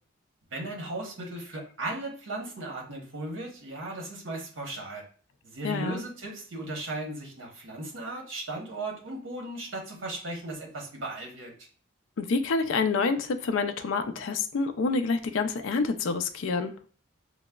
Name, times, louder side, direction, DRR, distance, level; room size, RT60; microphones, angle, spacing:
voice 1, 0.5-5.0 5.4-11.5, right 2 dB, 70° right, 1 dB, 0.9 m, -36 dB
voice 2, 5.6-6.0 12.2-16.7, left 4 dB, 75° left, 8 dB, 0.4 m, -27 dB
4.7 x 2.0 x 2.2 m, 0.42 s
head